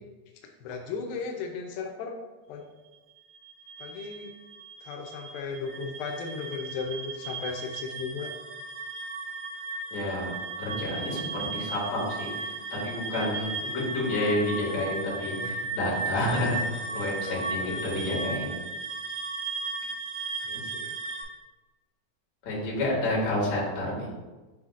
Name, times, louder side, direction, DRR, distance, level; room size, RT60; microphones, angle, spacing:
voice 1, 0.6-2.2 2.5-2.6 3.8-4.3 4.8-8.3 15.3-15.7 16.9-17.3 17.6-18.0 20.4-21.0, left 5 dB, 90° left, 2 dB, 2.0 m, -36 dB
sound 1, 3.3-21.2, right 3 dB, 70° right, 3.3 m, -36 dB
voice 2, 9.9-10.3 10.6-12.5 12.8-18.5 22.4-24.1, left 1 dB, 50° left, -6 dB, 2.7 m, -29 dB
7.9 x 5.6 x 2.4 m, 1.2 s
omnidirectional pair, 4.9 m